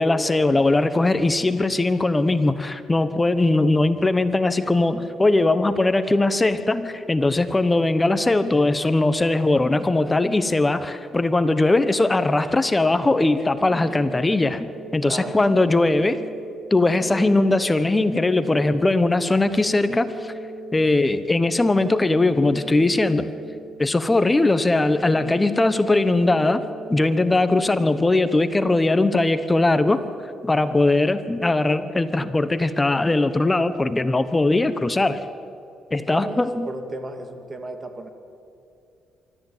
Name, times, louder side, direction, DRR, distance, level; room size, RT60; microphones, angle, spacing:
voice 1, 0.0-16.2 16.7-20.3 20.7-23.3 23.8-26.6 26.9-30.0 30.4-35.2 35.9-36.7, left 2 dB, 20° left, 12 dB, 1.1 m, -20 dB
sound 1, 13.5-28.5, right 1 dB, 55° right, 5.0 m, -39 dB
voice 2, 15.0-15.4 36.0-38.1, right 2 dB, 30° right, 6 dB, 2.5 m, -34 dB
24.5 x 13.5 x 9.1 m, 2.5 s
cardioid pair, 90°, 0 cm